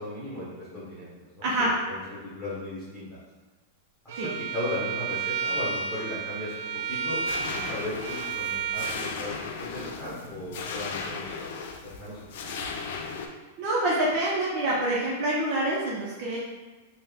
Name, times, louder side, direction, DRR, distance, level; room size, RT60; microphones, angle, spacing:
voice 1, 0.0-1.5 1.9-3.2 4.0-11.5 11.8-12.6, left 1 dB, 5° left, -12 dB, 1.2 m, -37 dB
voice 2, 1.4-1.7 4.1-4.3 13.6-16.4, right 1 dB, 45° right, -5 dB, 0.7 m, -26 dB
Bowed string instrument, 4.1-9.0, right 6 dB, 70° right, 0.3 m, -32 dB
sound 1, 7.3-13.3, left 5 dB, 65° left, 0.4 m, -36 dB
3.3 x 2.1 x 3.5 m, 1.2 s
hypercardioid pair, 140°, 0 cm